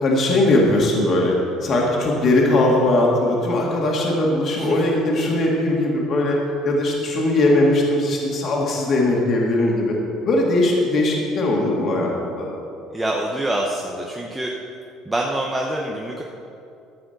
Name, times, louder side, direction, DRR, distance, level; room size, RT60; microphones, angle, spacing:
voice 1, 0.0-1.3 1.6-6.4 6.6-10.0 10.3-12.5, left 1 dB, 40° left, -2 dB, 2.0 m, -19 dB
voice 2, 12.9-14.5 15.0-16.2, right 1 dB, 10° right, -1 dB, 0.8 m, -25 dB
12.5 x 4.9 x 7.9 m, 2.6 s
cardioid pair, 130°, 0 cm